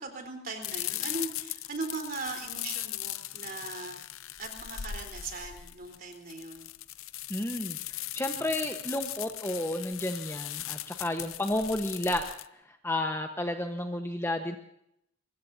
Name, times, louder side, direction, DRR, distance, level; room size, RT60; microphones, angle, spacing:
voice 1, 0.0-4.0 4.4-6.7, right 3 dB, 40° right, 4 dB, 3.9 m, -39 dB
sound 1, 0.6-12.5, left 13 dB, 75° left, 0.7 m, -38 dB
voice 2, 7.3-12.2 12.8-14.6, left 1 dB, 10° left, 5 dB, 1.1 m, -32 dB
24.0 x 21.5 x 2.7 m, 0.76 s
head